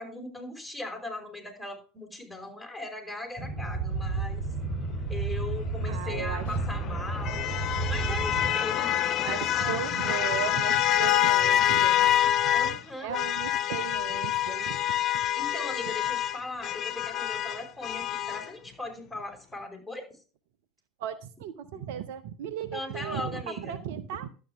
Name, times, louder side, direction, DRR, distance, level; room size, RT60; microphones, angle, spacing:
voice 1, 0.0-4.4 5.1-7.5 7.9-10.5 12.5-13.2 15.4-20.1 22.7-23.8, left 2 dB, ahead, 2 dB, 5.1 m, -39 dB
sound 1, 3.4-8.5, right 3 dB, 45° right, 2.6 m, -32 dB
voice 2, 5.9-6.6 9.3-14.8 21.0-24.3, right 9 dB, 65° right, 12 dB, 0.8 m, -36 dB
sound 2, 6.2-12.8 13.1-18.5, left 11 dB, 45° left, 0.7 m, -27 dB
12.0 x 8.8 x 3.5 m, 0.36 s
hypercardioid pair, 80°, 0 cm